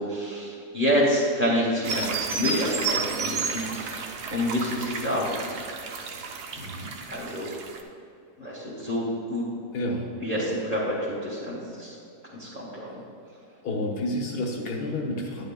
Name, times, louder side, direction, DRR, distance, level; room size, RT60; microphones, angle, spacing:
voice 1, 0.0-4.0 4.3-5.3 7.1-7.5 8.4-9.4 10.2-11.9 12.3-12.8, equal, 30° right, -7 dB, 1.7 m, -27 dB
sound 1, 1.8-7.8, right 4 dB, 75° right, 0.6 m, -32 dB
voice 2, 6.6-6.9 9.7-10.1 12.9-13.0 13.6-15.4, left 1 dB, 65° left, 1 dB, 1.5 m, -30 dB
10.0 x 9.9 x 2.3 m, 2.6 s
omnidirectional pair, 1.9 m